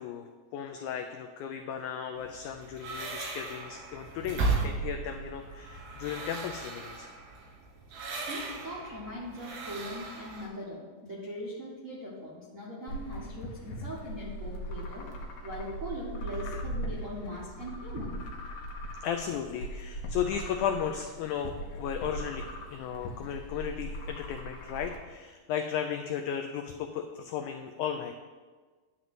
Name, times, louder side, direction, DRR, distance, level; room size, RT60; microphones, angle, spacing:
voice 1, 0.0-7.1 16.4-16.6 19.0-28.1, left 8 dB, 85° left, 6 dB, 1.7 m, -35 dB
sound 1, 2.2-10.5, right 3 dB, 80° right, 3.5 m, -36 dB
voice 2, 8.3-15.1 15.4-18.1, equal, 40° right, -8 dB, 1.1 m, -40 dB
sound 2, 12.9-25.0, right 1 dB, 65° left, 2.2 m, -39 dB
10.5 x 4.1 x 7.7 m, 1.4 s
omnidirectional pair, 4.1 m